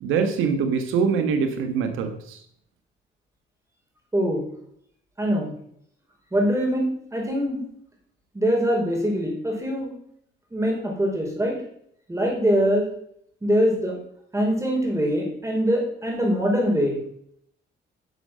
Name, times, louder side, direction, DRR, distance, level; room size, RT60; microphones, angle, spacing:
voice 1, 0.0-2.4, right 6 dB, 90° right, 6 dB, 1.5 m, -24 dB
voice 2, 5.2-5.5 6.3-7.6 8.3-9.9 10.5-11.6 12.1-12.9 13.4-13.9 14.3-17.0, equal, 15° right, -1 dB, 4.9 m, -23 dB
11.0 x 6.5 x 7.6 m, 0.69 s
cardioid pair, 90°, 20 cm